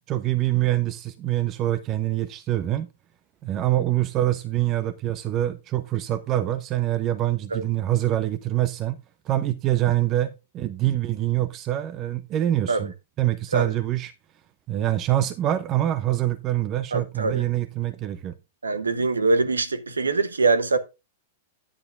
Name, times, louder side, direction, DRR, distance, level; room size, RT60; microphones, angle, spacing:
voice 1, 0.1-2.9 3.4-9.0 9.3-12.9 13.2-14.1 14.7-18.3, right 13 dB, 35° right, 0.8 m, -25 dB
voice 2, 16.9-17.4 18.6-20.8, right 3 dB, 85° right, 1.2 m, -23 dB
10.5 x 9.9 x 2.4 m
hypercardioid pair, 105°, 0 cm